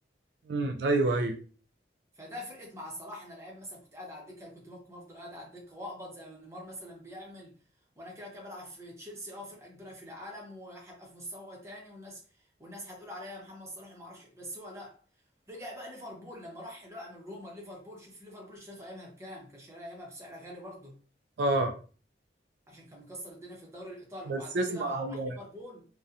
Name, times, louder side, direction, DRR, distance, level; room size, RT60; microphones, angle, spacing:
voice 1, 0.5-1.4 21.4-21.7 24.3-25.3, right 2 dB, 70° right, 0.3 m, -28 dB
voice 2, 2.1-7.5 8.0-15.0 15.5-21.0 22.7-25.9, equal, 15° right, 0.6 m, -45 dB
2.7 x 2.1 x 2.4 m
head